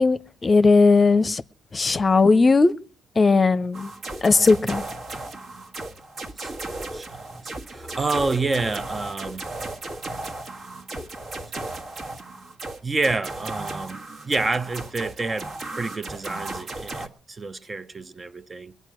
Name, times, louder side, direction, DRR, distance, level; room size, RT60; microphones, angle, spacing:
voice 1, 0.0-1.4 1.7-2.7 3.2-3.9 4.2-4.8, left 3 dB, 35° left, 0.7 m, -18 dB
sound 1, 3.7-17.1, right 2 dB, 55° right, 1.7 m, -35 dB
voice 2, 6.9-9.4 12.8-14.0 14.3-18.7, right 3 dB, 30° right, 0.6 m, -28 dB
21.0 x 9.2 x 6.2 m
supercardioid pair, 60°, 0 cm